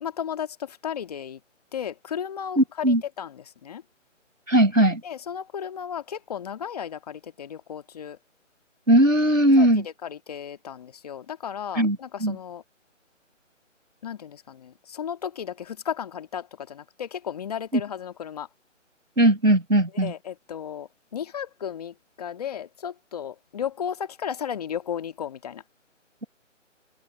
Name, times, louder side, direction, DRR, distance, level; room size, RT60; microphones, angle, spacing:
voice 1, 0.0-1.4 1.7-2.6 3.2-3.3 3.6-3.8 5.0-8.2 9.6-9.7 10.3-12.6 14.0-18.5 20.0-25.6, left 8 dB, 30° left, 1.8 m, -34 dB
voice 2, 2.6-3.0 4.5-5.0 8.9-9.9 11.7-12.4 17.7-17.8 19.2-20.1, right 1 dB, 90° right, 5.3 m, -19 dB
figure-of-eight pair, 155°, 39 cm